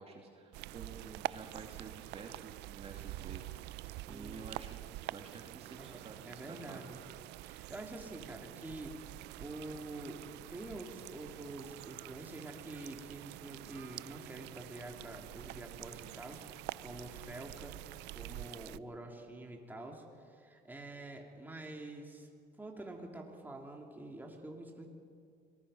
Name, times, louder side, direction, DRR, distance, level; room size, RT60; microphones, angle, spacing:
voice 1, 0.0-4.8 5.1-6.8, right 4 dB, 35° right, 1 dB, 2.4 m, -50 dB
sound 1, 0.5-18.8, right 18 dB, 85° right, 0.4 m, -46 dB
voice 2, 3.9-4.5 5.8-7.0 7.4-9.0 9.4-10.2 10.5-17.7 18.1-22.3 22.6-24.9, right 2 dB, 10° right, 1 dB, 3.0 m, -47 dB
26.5 x 19.5 x 5.6 m, 2.3 s
cardioid pair, 110°, 17 cm